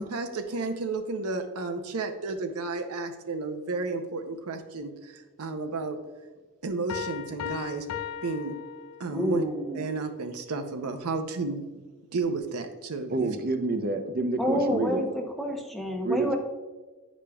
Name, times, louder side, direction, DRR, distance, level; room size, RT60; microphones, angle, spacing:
voice 1, 0.0-6.0 6.6-7.9 8.2-8.6 9.0-9.4 9.7-11.6 12.1-13.3, right 3 dB, 85° right, 6 dB, 0.6 m, -32 dB
sound 1, 6.9-9.4, left 9 dB, 75° left, 0.4 m, -37 dB
voice 2, 9.1-9.9 14.4-16.4, equal, ahead, 1 dB, 0.7 m, -29 dB
voice 3, 13.1-15.0 16.0-16.4, right 3 dB, 45° right, 7 dB, 0.5 m, -28 dB
9.9 x 5.0 x 2.3 m, 1.3 s
head